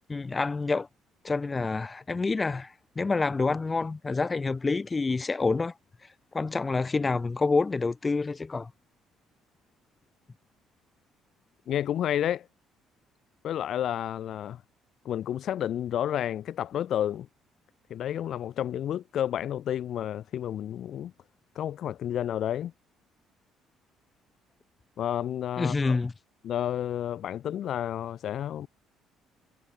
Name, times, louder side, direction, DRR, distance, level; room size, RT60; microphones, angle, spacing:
voice 1, 0.1-0.9 1.2-5.7 6.3-8.7 25.6-26.1, left 3 dB, 20° left, 5.7 m, -27 dB
voice 2, 11.7-12.5 13.4-14.6 15.0-17.3 17.9-21.1 21.5-22.7 25.0-26.0 26.4-28.7, left 10 dB, 60° left, 4.7 m, -30 dB
cardioid pair, 115°, 0 cm